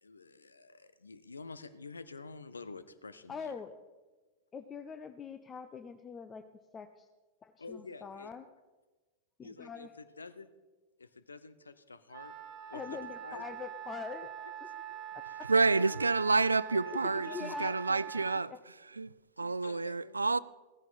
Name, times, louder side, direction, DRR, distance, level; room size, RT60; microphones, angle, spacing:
voice 1, 0.0-3.5 7.6-8.3 9.4-9.9 10.2-10.5 11.0-12.3 12.7-13.6 15.2-15.4 15.8-16.0 16.7-17.6 18.1-18.2 19.4-20.1, left 4 dB, 75° left, 0.8 m, -48 dB
voice 2, 3.3-3.8 4.5-6.4 6.7-7.1 7.4-8.4 9.4-9.9 12.7-14.3 14.6-14.7 15.1-15.5 17.2-18.2, left 6 dB, 20° left, 0.7 m, -44 dB
Wind instrument woodwind instrument, 12.1-18.5, right 10 dB, 30° right, 1.5 m, -44 dB
voice 3, 15.5-18.5 18.9-20.4, right 3 dB, 80° right, 0.4 m, -29 dB
16.0 x 15.0 x 4.2 m
figure-of-eight pair, 90°, 0 cm